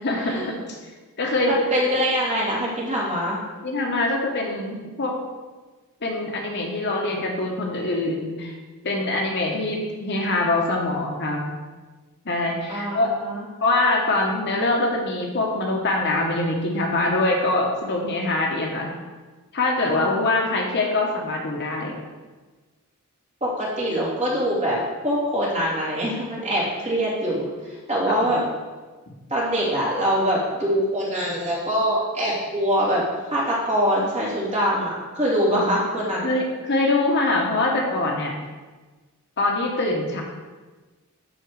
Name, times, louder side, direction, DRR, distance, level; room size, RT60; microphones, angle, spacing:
voice 1, 0.0-0.6 1.2-1.6 3.6-5.2 6.0-8.6 8.8-11.5 12.2-13.1 13.6-18.9 19.5-22.0 28.1-28.2 35.5-35.7 36.2-38.3 39.4-40.2, left 2 dB, 55° left, 0 dB, 1.2 m, -24 dB
voice 2, 1.5-3.4 12.7-13.4 19.9-20.3 23.4-28.4 29.3-33.0 33.3-36.3, equal, 30° right, -7 dB, 2.9 m, -24 dB
11.5 x 4.1 x 4.8 m, 1.3 s
head